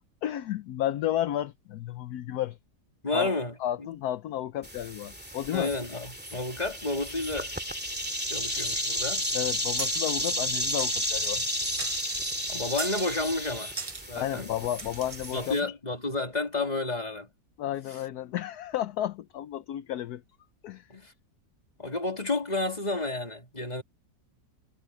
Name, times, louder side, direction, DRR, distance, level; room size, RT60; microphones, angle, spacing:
voice 1, 0.2-2.6 3.1-5.7 9.3-11.5 14.1-15.6 17.6-20.2 20.6-20.9, left 12 dB, 70° left, 1.2 m, -32 dB
voice 2, 3.0-3.9 5.5-7.5 8.3-9.2 12.5-13.7 14.0-14.5 15.3-17.3 20.9-21.1 21.8-23.8, left 2 dB, 25° left, 3.1 m, -31 dB
sound 1, 4.6-15.6, equal, 5° right, 2.5 m, -32 dB
sound 2, 9.8-10.2 10.8-11.5 11.8-12.2 12.8-13.2 13.8-14.1 14.8-15.4, right 4 dB, 40° right, 0.4 m, -39 dB
omnidirectional pair, 1.9 m